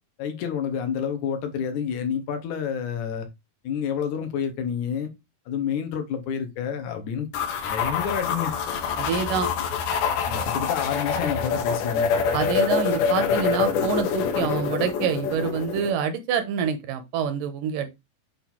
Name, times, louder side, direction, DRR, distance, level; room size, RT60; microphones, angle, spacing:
voice 1, 0.2-3.3 3.6-5.1 5.5-7.3 7.6-8.6 10.3-12.1, left 8 dB, 70° left, 2.0 m, -29 dB
sound 1, 7.3-15.9, left 6 dB, 90° left, 2.9 m, -25 dB
voice 2, 9.0-9.5 12.3-18.0, right 7 dB, 75° right, 2.3 m, -26 dB
8.1 x 2.7 x 4.3 m
omnidirectional pair, 4.2 m